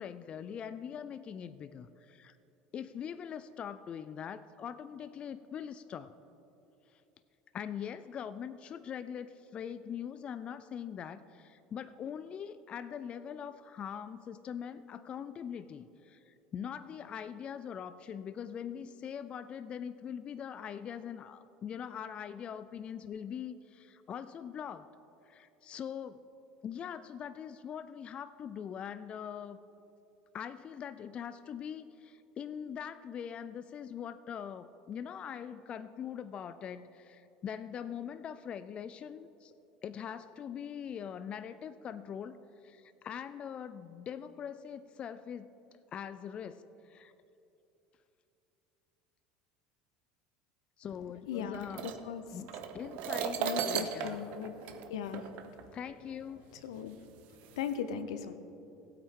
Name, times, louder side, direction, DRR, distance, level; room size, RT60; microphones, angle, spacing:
voice 1, 0.0-2.4 2.7-6.1 6.9-7.0 7.5-24.9 25.3-26.2 26.6-29.6 30.3-39.5 39.8-42.4 42.6-45.5 45.9-47.1 50.8-51.9 52.3-52.5 52.7-54.3 55.7-56.4, left 8 dB, 40° left, 13 dB, 0.4 m, -42 dB
voice 2, 51.3-51.7 52.0-52.4 53.4-54.5 54.9-55.3 56.6-57.0 57.5-58.3, left 8 dB, 85° left, 10 dB, 0.7 m, -38 dB
sound 1, 51.5-55.7 56.6-56.7 57.4-57.7, right 8 dB, 65° right, 0.8 m, -37 dB
15.5 x 8.5 x 3.7 m, 2.9 s
hypercardioid pair, 90°, 3 cm